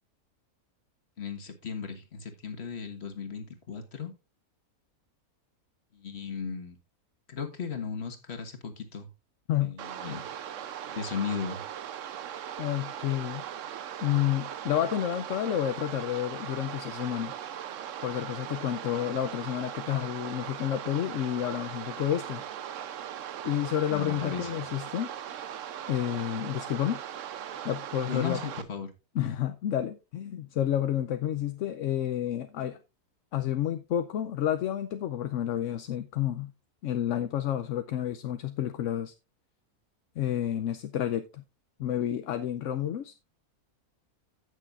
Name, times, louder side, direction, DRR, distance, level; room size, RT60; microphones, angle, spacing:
voice 1, 1.2-4.1 5.9-6.8 7.3-9.1 9.6-10.2 10.9-11.6 23.9-24.6 28.1-28.9, left 6 dB, 45° left, 1.6 m, -36 dB
sound 1, 9.8-28.6, right 10 dB, 65° right, 1.0 m, -39 dB
voice 2, 12.6-13.4 14.0-17.3 18.0-22.4 23.4-25.1 25.9-27.0 27.6-28.4 29.1-32.8 33.3-36.5 36.8-39.1 40.2-41.4 41.8-43.1, left 11 dB, 65° left, 0.9 m, -30 dB
16.0 x 6.4 x 2.4 m
omnidirectional pair, 1.6 m